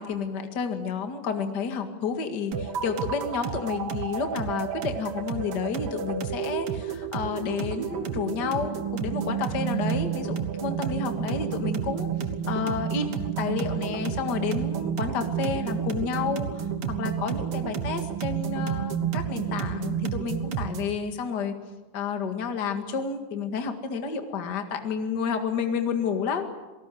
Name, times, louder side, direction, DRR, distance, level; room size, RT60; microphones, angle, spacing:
voice 1, 0.0-12.1 12.5-16.7 17.0-21.5 21.9-26.5, left 6 dB, 35° left, 6 dB, 2.1 m, -30 dB
sound 1, 2.5-21.0, right 8 dB, 55° right, 2.0 m, -30 dB
27.5 x 18.5 x 7.8 m, 1.2 s
omnidirectional pair, 3.7 m